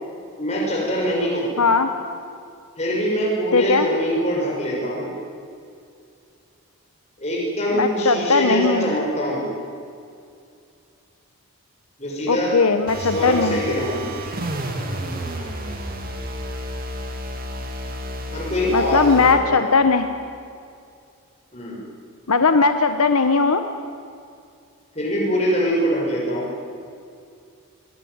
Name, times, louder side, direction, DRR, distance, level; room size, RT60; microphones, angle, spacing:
voice 1, 0.4-1.5 2.8-5.1 7.2-9.4 12.0-12.5 13.0-14.1 18.3-19.6 21.5-21.8 24.9-26.5, equal, 30° left, -4 dB, 6.1 m, -23 dB
voice 2, 1.6-1.9 3.5-3.9 7.7-8.9 12.3-13.6 18.7-20.1 22.3-23.6, left 4 dB, 85° left, 8 dB, 1.2 m, -18 dB
sound 1, 12.9-19.4, equal, 40° right, 2.8 m, -31 dB
24.0 x 21.0 x 9.6 m, 2.4 s
head